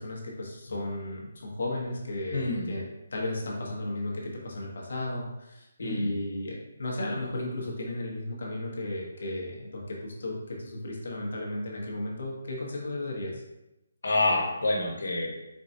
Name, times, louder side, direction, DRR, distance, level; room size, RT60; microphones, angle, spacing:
voice 1, 0.0-13.4, left 1 dB, 55° left, -2 dB, 1.1 m, -34 dB
voice 2, 2.3-2.7 5.8-6.1 14.0-15.3, left 2 dB, 90° left, -1 dB, 1.3 m, -27 dB
4.5 x 3.8 x 2.7 m, 0.95 s
hypercardioid pair, 180°, 0 cm